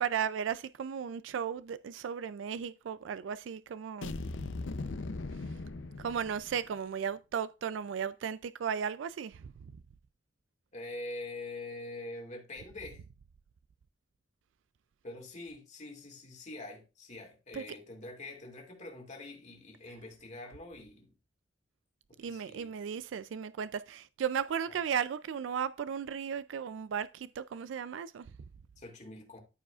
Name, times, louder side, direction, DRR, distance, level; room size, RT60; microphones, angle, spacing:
voice 1, 0.0-4.1 6.0-9.5 17.5-17.6 22.2-28.3, right 7 dB, 85° right, 0.3 m, -35 dB
sound 1, 4.0-6.8, left 3 dB, 85° left, 0.6 m, -39 dB
voice 2, 10.7-13.0 15.0-21.1 22.2-22.7 24.7-24.8 28.8-29.4, left 2 dB, 40° left, 2.4 m, -44 dB
14.0 x 4.9 x 2.4 m
head